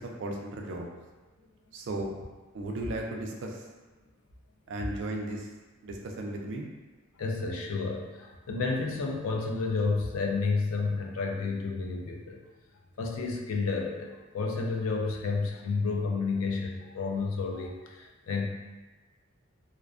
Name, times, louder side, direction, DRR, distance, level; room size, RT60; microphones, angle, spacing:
voice 1, 0.2-0.9 1.7-2.2 2.5-3.6 4.7-5.5 5.8-6.7, right 1 dB, 60° right, 1 dB, 0.4 m, -35 dB
voice 2, 7.2-12.4 13.0-18.5, left 4 dB, 85° left, 1 dB, 0.4 m, -31 dB
2.4 x 2.1 x 2.4 m, 1.2 s
head